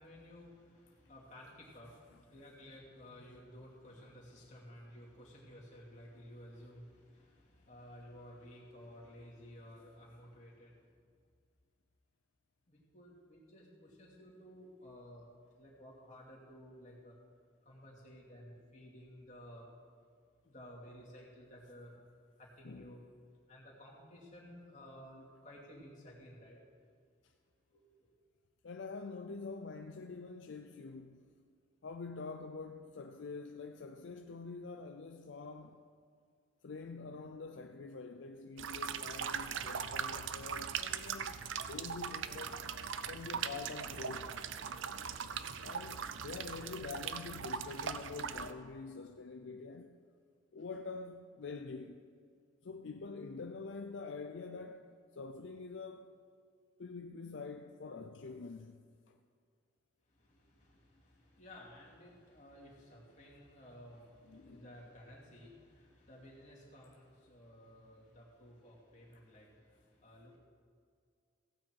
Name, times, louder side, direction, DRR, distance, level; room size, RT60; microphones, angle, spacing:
voice 1, 0.0-10.9 12.7-15.3 15.6-17.2 17.6-19.7 20.4-21.9 22.4-23.0 23.5-26.6 27.7-28.1 60.1-70.4, equal, 40° left, 2.6 m, -55 dB
voice 2, 22.6-23.0 27.2-27.3 28.6-31.2 31.8-35.8 36.6-42.6 43.1-44.3 45.3-49.9 50.5-52.0 52.6-56.1 56.8-58.8 59.1-59.2 64.2-64.7, left 4 dB, 70° left, 0.5 m, -46 dB
sound 1, 38.6-48.5, right 7 dB, 75° right, 0.5 m, -40 dB
16.0 x 8.6 x 4.6 m
head